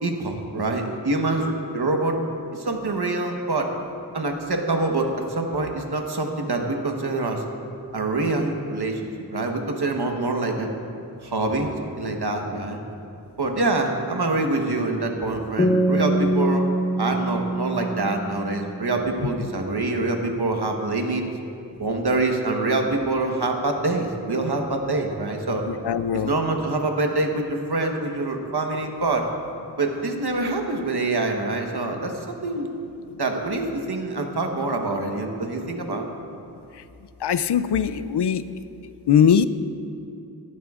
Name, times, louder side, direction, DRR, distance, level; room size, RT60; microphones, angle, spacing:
voice 1, 0.0-2.2 2.5-3.7 4.1-7.4 7.9-10.7 11.2-12.8 13.4-16.6 17.0-21.2 21.8-25.6 26.1-29.3 29.8-32.7 33.2-36.1, right 2 dB, 65° right, 3 dB, 1.2 m, -25 dB
sound 1, 15.6-19.1, right 1 dB, 20° left, 1.1 m, -24 dB
voice 2, 25.7-26.3 37.2-38.4 39.1-39.5, left 8 dB, 70° left, 13 dB, 0.5 m, -20 dB
17.0 x 12.0 x 2.4 m, 2.7 s
wide cardioid pair, 60°, 41 cm